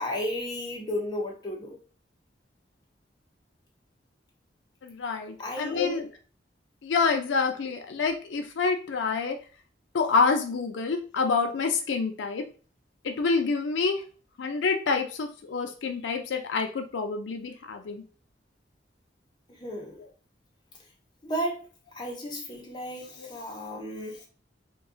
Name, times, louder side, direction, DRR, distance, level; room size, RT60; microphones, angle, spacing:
voice 1, 0.0-1.8 5.4-5.9 19.6-20.0 21.2-21.6 21.9-24.3, equal, 20° left, -2 dB, 0.7 m, -33 dB
voice 2, 4.8-6.1 6.8-9.4 9.9-12.4 13.0-14.0 14.4-18.0 23.2-23.3, left 4 dB, 85° left, 5 dB, 0.4 m, -27 dB
2.3 x 2.3 x 3.7 m, 0.37 s
head